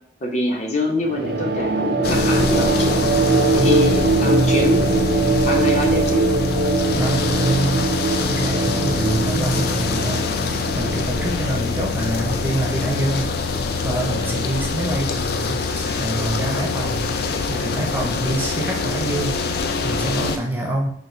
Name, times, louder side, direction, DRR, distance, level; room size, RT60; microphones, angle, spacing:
voice 1, 0.2-2.9 3.5-5.0 5.4-6.3 11.6-11.9 18.0-18.3 20.2-20.5, left 2 dB, 40° left, 0 dB, 0.8 m, -25 dB
sound 1, 1.0-15.9, right 3 dB, 65° right, 0.5 m, -22 dB
sound 2, 2.0-20.4, left 4 dB, 60° left, 0.4 m, -24 dB
voice 2, 3.6-3.9 7.0-7.9 8.2-10.3 10.7-20.9, right 1 dB, 10° right, 0 dB, 0.6 m, -26 dB
4.0 x 2.5 x 3.8 m, 0.69 s
head